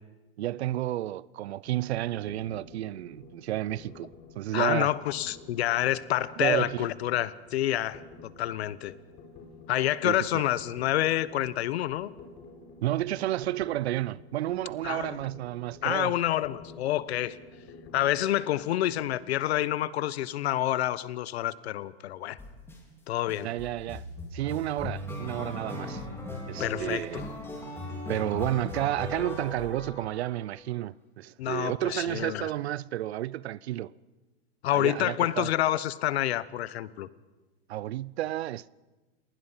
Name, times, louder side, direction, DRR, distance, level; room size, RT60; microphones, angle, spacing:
voice 1, 0.4-4.9 6.4-6.9 10.0-10.4 12.8-16.2 23.4-24.0 24.3-26.0 26.5-27.2 28.1-33.9 34.7-35.5 37.7-38.7, right 14 dB, 90° right, 0.6 m, -31 dB
sound 1, 1.7-19.1, left 3 dB, 40° left, 5.0 m, -51 dB
voice 2, 4.5-8.9 9.7-12.1 14.8-15.2 15.8-17.4 17.9-22.4 23.1-23.5 26.6-27.3 31.4-32.5 34.6-37.1, left 13 dB, 80° left, 1.1 m, -28 dB
sound 2, 22.4-22.8 23.3-30.5, left 2 dB, 5° left, 4.2 m, -38 dB
27.5 x 19.5 x 5.8 m
supercardioid pair, 140°, 31 cm